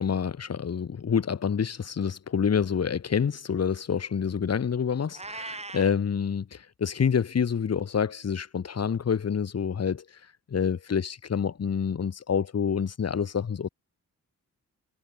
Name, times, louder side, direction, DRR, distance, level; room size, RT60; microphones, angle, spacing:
voice 1, 0.0-10.0 10.5-13.7, left 7 dB, 50° left, 2.5 m, -27 dB
Meow, 5.1-6.0, right 3 dB, 20° right, 6.0 m, -39 dB
wide cardioid pair, 180°, 31 cm